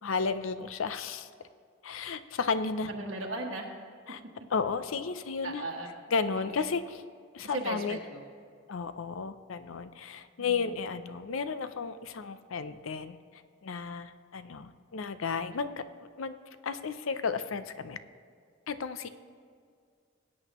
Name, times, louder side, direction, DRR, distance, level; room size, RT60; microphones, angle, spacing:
voice 1, 0.0-1.3 1.8-2.9 4.1-4.2 4.5-5.6 6.1-7.0 7.3-8.0 8.7-15.8 16.2-16.4 16.6-18.0 18.7-19.1, left 5 dB, 85° left, 12 dB, 0.5 m, -33 dB
voice 2, 2.9-3.7 5.4-5.9 6.3-6.6 7.4-8.2 10.4-10.8, right 2 dB, 80° right, -1 dB, 1.4 m, -37 dB
19.5 x 8.6 x 3.0 m, 2.2 s
head